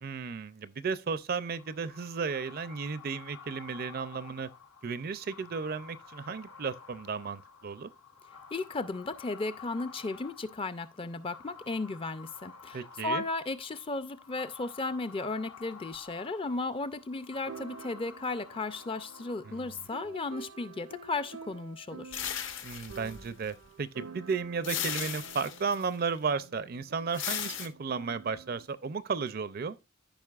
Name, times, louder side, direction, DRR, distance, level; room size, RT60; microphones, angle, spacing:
voice 1, 0.0-4.5 4.8-7.9 12.7-13.2 19.4-19.7 22.6-29.8, right 5 dB, 45° right, 0.4 m, -34 dB
sound 1, 1.4-20.3, left 6 dB, 80° left, 1.3 m, -52 dB
voice 2, 8.5-22.2, left 3 dB, 25° left, 0.4 m, -35 dB
sound 2, 15.9-16.0 17.5-28.7, right 5 dB, 85° right, 0.7 m, -49 dB
sound 3, 22.1-23.6 24.6-25.8 27.1-27.7, left 9 dB, 65° left, 1.0 m, -36 dB
14.0 x 5.2 x 2.4 m
head